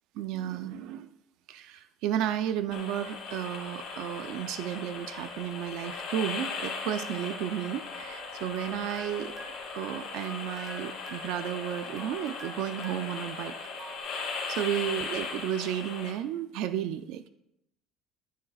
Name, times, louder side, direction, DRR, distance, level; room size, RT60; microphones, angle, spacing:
voice 1, 0.1-1.1 1.5-9.3 9.7-13.5 14.5-17.3, right 11 dB, 60° right, 11 dB, 0.4 m, -33 dB
sound 1, 2.7-16.1, left 4 dB, 45° left, 2.3 m, -38 dB
sound 2, 8.2-14.0, right 2 dB, 20° right, 1.2 m, -49 dB
11.0 x 9.7 x 2.4 m, 0.80 s
cardioid pair, 170°, 0 cm